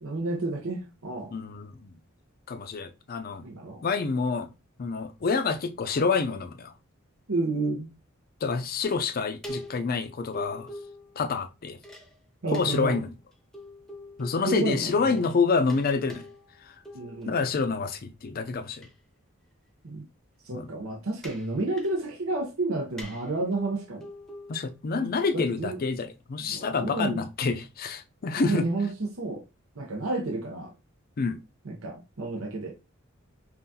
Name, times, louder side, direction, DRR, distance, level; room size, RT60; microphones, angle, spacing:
voice 1, 0.0-1.3 3.4-3.8 7.3-7.9 12.4-13.0 14.5-15.2 16.9-17.4 19.8-20.1 20.4-24.1 24.9-25.0 25.3-25.8 26.4-27.2 28.4-29.4 29.8-30.7 31.6-32.7, right 2 dB, 90° right, 0.8 m, -30 dB
voice 2, 1.3-1.9 2.5-3.5 3.8-4.5 4.8-6.7 8.4-10.7 11.2-11.8 12.5-13.1 14.2-16.2 17.3-18.9 20.5-20.7 24.5-28.7 31.2-31.4, left 4 dB, 45° left, 0.4 m, -27 dB
sound 1, 8.8-9.1 9.4-11.3 11.8-12.1 12.5-14.8 15.2-15.4 15.7-17.4 18.8-18.9 21.2-22.2 23.0-24.8, equal, ahead, 0.7 m, -44 dB
5.5 x 2.4 x 2.7 m
head